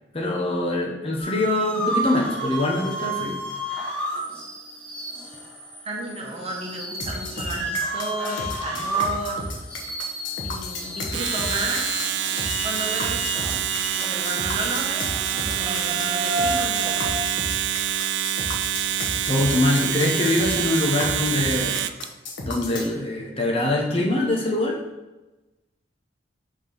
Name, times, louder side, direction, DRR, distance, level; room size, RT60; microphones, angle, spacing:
voice 1, 0.1-3.4 19.2-21.8 22.4-24.8, left 2 dB, 30° left, -1 dB, 0.9 m, -23 dB
sound 1, 1.2-17.1, right 1 dB, 10° left, 1.4 m, -31 dB
voice 2, 5.8-9.4 10.4-12.0 12.6-13.7 14.0-17.2, right 2 dB, 35° right, -2 dB, 1.2 m, -33 dB
sound 2, 7.0-22.9, left 2 dB, 90° left, 1.1 m, -34 dB
Domestic sounds home sounds, 11.0-22.1, right 11 dB, 65° right, 0.3 m, -26 dB
5.0 x 3.7 x 5.3 m, 1.1 s
head